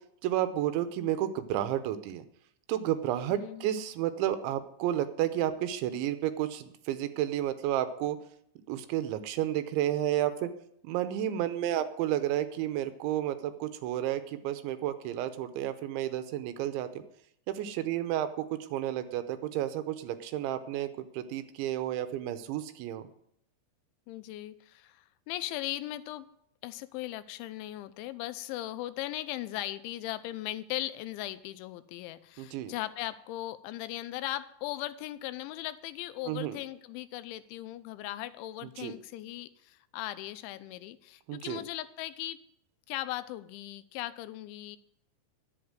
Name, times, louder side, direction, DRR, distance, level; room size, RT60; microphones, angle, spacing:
voice 1, 0.2-2.2 2.7-8.2 8.7-10.5 10.8-16.9 17.5-23.0 32.4-32.7 36.3-36.5 38.8-38.9 41.3-41.6, right 12 dB, 90° right, 10 dB, 3.1 m, -31 dB
voice 2, 3.3-3.7 24.1-26.3 26.6-42.4 42.9-44.8, left 15 dB, 85° left, 13 dB, 3.0 m, -38 dB
11.5 x 8.1 x 7.8 m, 0.72 s
omnidirectional pair, 5.3 m